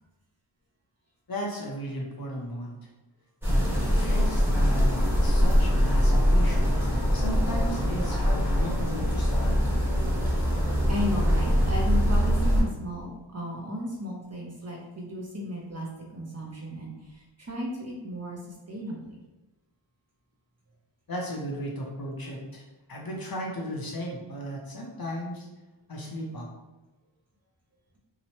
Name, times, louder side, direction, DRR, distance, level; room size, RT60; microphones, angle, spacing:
voice 1, 1.3-2.8 3.4-9.6 21.1-22.6 22.9-25.5 25.9-26.5, equal, 45° left, -2 dB, 0.6 m, -35 dB
sound 1, 3.4-12.6, equal, 5° right, 0.9 m, -23 dB
voice 2, 10.9-18.4 18.7-19.2, left 1 dB, 30° right, -2 dB, 0.6 m, -34 dB
2.8 x 2.1 x 2.8 m, 1.1 s
wide cardioid pair, 80°, 50 cm